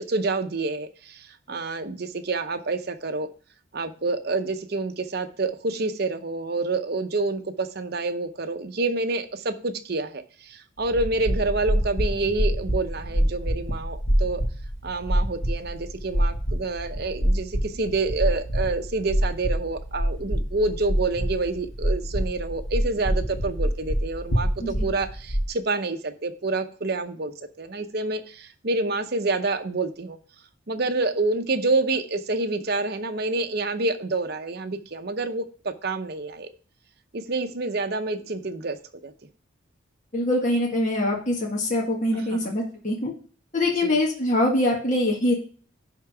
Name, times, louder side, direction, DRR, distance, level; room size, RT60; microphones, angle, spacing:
voice 1, 0.0-3.3 3.7-14.4 14.8-30.2 30.7-36.5 37.1-38.8 39.0-39.1 42.1-42.5 43.8-44.0, right 3 dB, 50° right, 8 dB, 0.7 m, -28 dB
sound 1, 10.8-25.5, equal, 75° left, 1.8 m, -26 dB
voice 2, 40.1-43.1 43.5-45.3, left 1 dB, 40° left, -1 dB, 1.7 m, -23 dB
10.5 x 3.7 x 4.8 m, 0.42 s
head